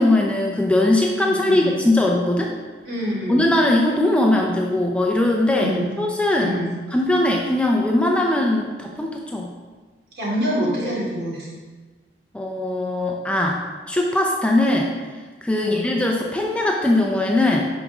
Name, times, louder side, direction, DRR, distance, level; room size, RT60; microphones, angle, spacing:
voice 1, 0.0-2.5 3.3-5.7 6.0-6.6 6.9-9.5 12.3-13.6 13.9-14.9 15.4-17.7, left 1 dB, 5° left, 0 dB, 0.6 m, -20 dB
voice 2, 1.4-1.8 2.9-3.4 5.6-6.0 6.4-6.7 10.2-11.5 15.6-15.9, equal, 65° right, -5 dB, 2.8 m, -26 dB
11.0 x 5.3 x 3.6 m, 1.4 s
head